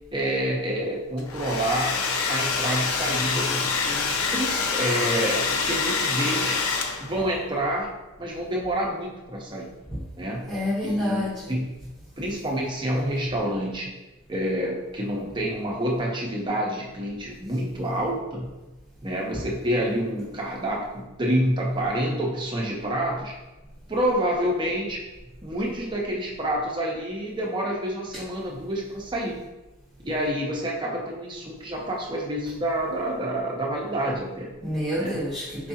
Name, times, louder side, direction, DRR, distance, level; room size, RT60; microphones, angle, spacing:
voice 1, 0.1-2.0 2.3-6.6 7.0-7.9 8.2-9.7 10.2-10.5 10.8-11.6 12.2-13.9 14.3-18.5 19.0-23.3 23.9-25.0 25.4-29.5 30.0-34.5 35.0-35.2, equal, 20° right, -2 dB, 0.6 m, -28 dB
Domestic sounds home sounds, 1.2-7.2, left 4 dB, 80° left, 0.5 m, -26 dB
voice 2, 10.5-11.3 34.6-35.7, left 1 dB, ahead, -14 dB, 1.4 m, -28 dB
4.6 x 3.3 x 2.8 m, 1.1 s
head